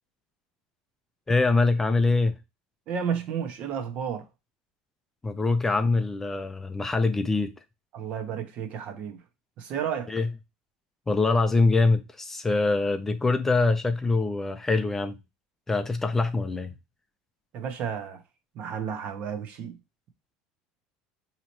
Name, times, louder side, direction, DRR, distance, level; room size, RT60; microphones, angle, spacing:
voice 1, 1.3-2.4 5.2-7.5 10.1-10.3 11.1-15.2 15.7-16.7, left 3 dB, 15° left, 0.4 m, -24 dB
voice 2, 2.9-4.2 7.9-9.2 9.6-10.1 17.5-18.2 18.5-19.8, right 7 dB, 50° right, 0.8 m, -32 dB
4.1 x 2.9 x 2.9 m
supercardioid pair, 120°, 3 cm